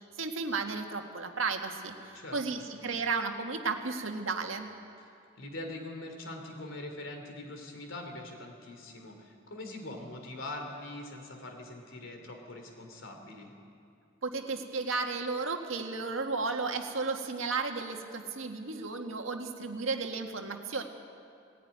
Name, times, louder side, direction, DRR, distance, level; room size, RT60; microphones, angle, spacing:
voice 1, 0.2-4.7 14.2-20.8, right 4 dB, 85° right, 4 dB, 1.7 m, -34 dB
voice 2, 2.1-2.6 5.4-13.5, left 2 dB, 75° left, 3 dB, 3.3 m, -43 dB
18.5 x 15.5 x 9.6 m, 2.5 s
head